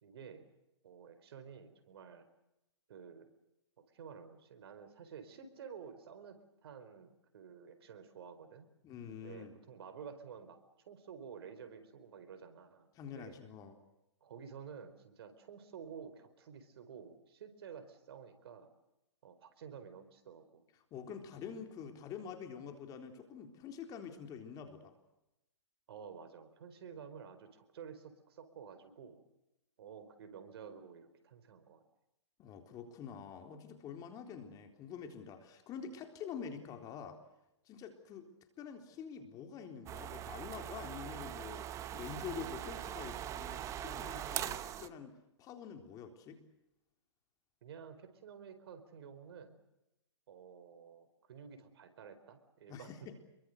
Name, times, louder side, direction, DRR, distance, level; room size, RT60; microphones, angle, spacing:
voice 1, 0.0-0.5 0.8-2.3 2.9-3.3 3.9-8.7 9.2-13.4 14.2-18.7 19.2-20.6 25.9-29.2 29.8-31.8 47.6-49.6 50.3-53.1, right 7 dB, 60° right, 10 dB, 4.5 m, -51 dB
voice 2, 8.8-9.5 12.9-13.8 20.9-24.9 32.4-37.2 37.7-38.3 38.6-46.4 52.7-53.1, left 7 dB, 25° left, 6 dB, 3.8 m, -47 dB
sound 1, 39.9-44.9, right 11 dB, 20° right, 1.1 m, -42 dB
27.5 x 23.0 x 6.7 m, 0.90 s
hypercardioid pair, 135°, 15 cm